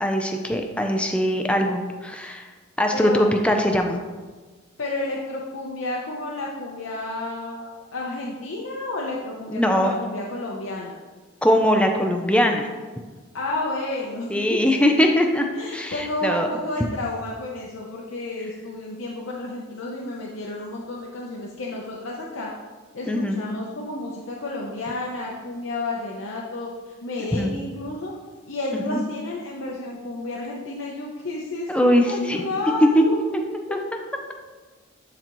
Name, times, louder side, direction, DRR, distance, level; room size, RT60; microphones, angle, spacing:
voice 1, 0.0-2.5 2.8-4.0 9.5-9.9 11.4-12.7 14.3-15.5 15.7-16.5 23.1-23.4 27.3-27.5 28.7-29.0 31.7-32.5 32.9-33.0 33.7-33.8, equal, 5° left, 3 dB, 0.5 m, -21 dB
voice 2, 2.9-3.3 4.8-11.0 13.3-14.6 15.5-22.5 22.9-28.1 28.5-33.2, left 2 dB, 85° left, -3 dB, 0.8 m, -31 dB
11.5 x 4.0 x 3.0 m, 1.3 s
head